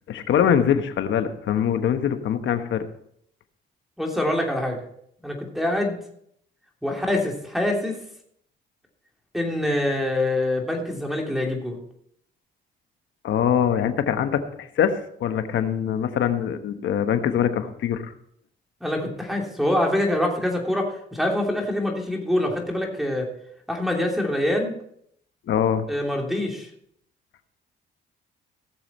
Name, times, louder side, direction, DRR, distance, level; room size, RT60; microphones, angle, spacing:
voice 1, 0.1-2.8 13.2-18.1 25.5-25.9, left 8 dB, 70° left, 8 dB, 1.3 m, -23 dB
voice 2, 4.0-4.8 5.2-6.0 6.8-8.0 9.3-11.8 18.8-23.3 23.7-24.7 25.9-26.7, left 1 dB, ahead, 1 dB, 3.0 m, -25 dB
17.5 x 7.0 x 4.3 m, 0.69 s
cardioid pair, 90°, 20 cm